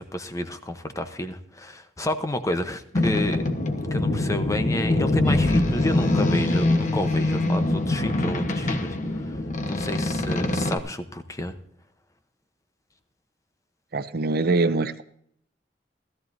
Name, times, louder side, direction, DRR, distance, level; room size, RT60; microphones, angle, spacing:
voice 1, 0.0-3.4 3.9-9.4 9.7-11.5, left 1 dB, 20° left, 8 dB, 0.8 m, -30 dB
Boat Water vehicle, 2.9-10.8, left 2 dB, 45° left, 1.1 m, -24 dB
voice 2, 13.9-15.0, right 3 dB, 60° right, 12 dB, 0.6 m, -23 dB
16.5 x 14.0 x 2.7 m, 0.66 s
head